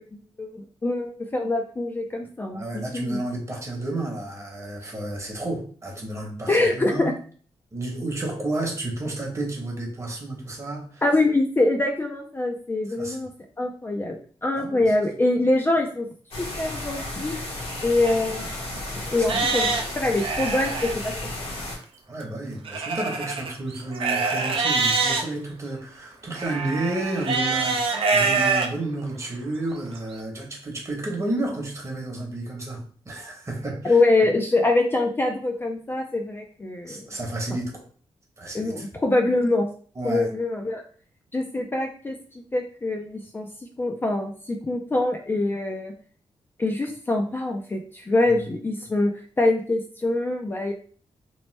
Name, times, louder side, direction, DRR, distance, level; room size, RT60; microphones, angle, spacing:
voice 1, 0.1-3.2 6.5-7.1 11.0-13.3 13.6-16.1 16.4-17.4 17.8-18.5 19.1-21.1 33.8-37.1 38.5-39.7 40.0-40.8 41.3-42.2 42.5-43.5 43.8-45.9 46.6-49.1 49.4-50.7, left 2 dB, 20° left, 2 dB, 0.4 m, -24 dB
voice 2, 2.5-7.2 7.7-11.0 13.0-13.3 14.6-14.9 19.1-19.4 22.1-34.0 36.8-37.8 38.4-38.9 40.0-40.3, right 2 dB, 30° right, 0 dB, 1.0 m, -31 dB
sound 1, 16.3-21.8, left 1 dB, 65° left, 1.0 m, -33 dB
Livestock farm animals working animals, 18.1-18.2 18.7-18.8 19.2-20.9 22.6-25.2 26.4-28.7 29.2-29.3 29.9-30.0, right 4 dB, 60° right, 0.5 m, -25 dB
3.0 x 2.1 x 3.1 m, 0.43 s
cardioid pair, 100°, 10 cm